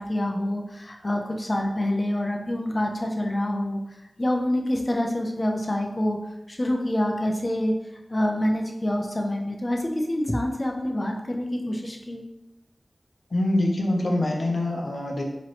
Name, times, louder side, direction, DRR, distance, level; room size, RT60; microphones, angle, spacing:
voice 1, 0.0-3.8 4.2-6.2 6.5-7.7 8.1-12.2, left 1 dB, 35° left, 2 dB, 0.6 m, -26 dB
voice 2, 13.3-15.2, left 1 dB, 60° left, 0 dB, 0.8 m, -24 dB
4.5 x 3.1 x 3.1 m, 0.91 s
wide cardioid pair, 85°, 0 cm